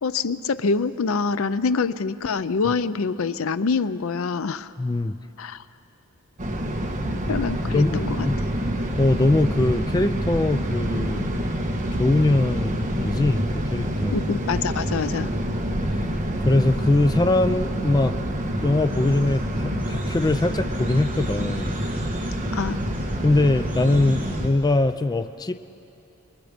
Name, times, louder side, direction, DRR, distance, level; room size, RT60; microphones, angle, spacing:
voice 1, 0.0-4.7 5.4-5.6 7.3-8.3 14.1-15.3 22.5-22.8, left 4 dB, 75° left, 14 dB, 0.5 m, -25 dB
voice 2, 4.8-5.1 7.7-8.4 9.0-11.3 11.9-14.2 16.0-16.1 16.4-18.1 18.6-21.7 23.2-25.5, left 2 dB, 20° left, 10 dB, 0.4 m, -22 dB
sound 1, 6.4-24.5, equal, 35° right, 1.4 m, -27 dB
sound 2, 18.9-24.6, right 1 dB, 10° right, 3.4 m, -47 dB
26.5 x 21.5 x 5.1 m, 2.7 s
head